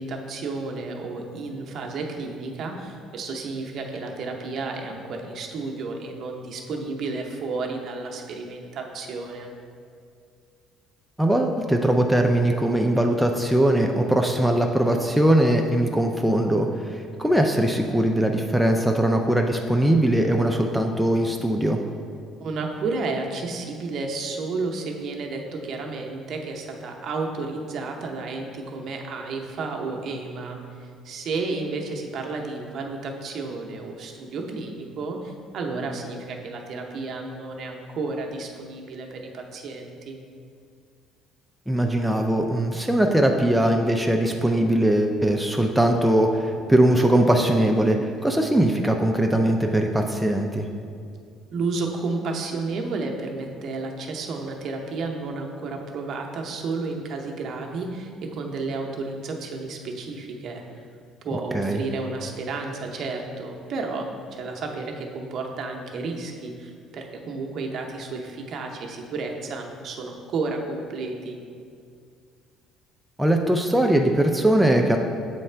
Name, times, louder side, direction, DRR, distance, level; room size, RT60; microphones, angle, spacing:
voice 1, 0.0-9.5 22.4-40.2 51.5-60.6 61.2-64.1 64.3-71.4, right 3 dB, 50° right, 2 dB, 0.7 m, -32 dB
voice 2, 11.2-21.8 41.7-50.7 61.5-61.8 73.2-75.0, right 1 dB, 5° right, 2 dB, 0.3 m, -21 dB
7.4 x 3.3 x 4.4 m, 2.2 s
cardioid pair, 125°, 0 cm